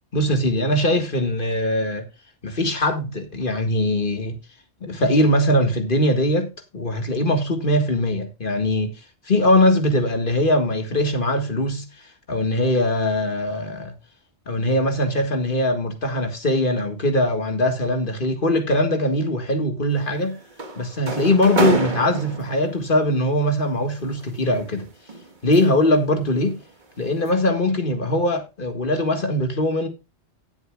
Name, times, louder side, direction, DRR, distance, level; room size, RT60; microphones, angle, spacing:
voice 1, 0.1-2.1 2.4-4.4 4.8-8.9 9.3-11.9 12.3-13.9 14.5-20.4 20.8-24.9 25.4-26.6 27.0-29.9, left 1 dB, 50° left, 2.0 m, -21 dB
sound 1, 19.9-22.9 24.0-25.9 26.3-26.6 27.0-27.3, right 3 dB, 45° right, 1.7 m, -28 dB
18.0 x 7.3 x 2.4 m
omnidirectional pair, 1.2 m